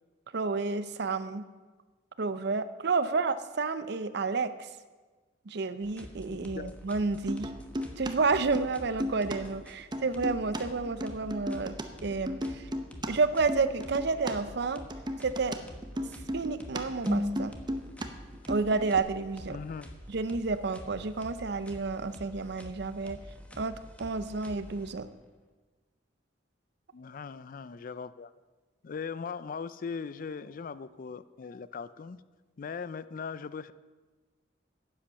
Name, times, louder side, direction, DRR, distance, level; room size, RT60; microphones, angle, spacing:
voice 1, 0.3-1.5 2.2-4.7 5.5-7.5 8.0-12.7 13.1-14.8 15.2-15.6 16.3-17.6 18.5-19.6 20.1-23.2 23.6-25.1, right 4 dB, 60° right, 13 dB, 0.6 m, -30 dB
sound 1, 5.8-25.3, equal, 5° left, 1.1 m, -48 dB
voice 2, 6.3-6.8 19.5-19.9 26.9-28.3 28.8-32.2 32.6-33.7, left 5 dB, 45° left, 16 dB, 0.4 m, -39 dB
sound 2, 7.3-8.1 8.4-9.4 9.6-11.8 12.1-14.3 14.6-18.1 18.3-19.0, equal, 25° right, 0.8 m, -34 dB
10.0 x 8.8 x 6.4 m, 1.3 s
head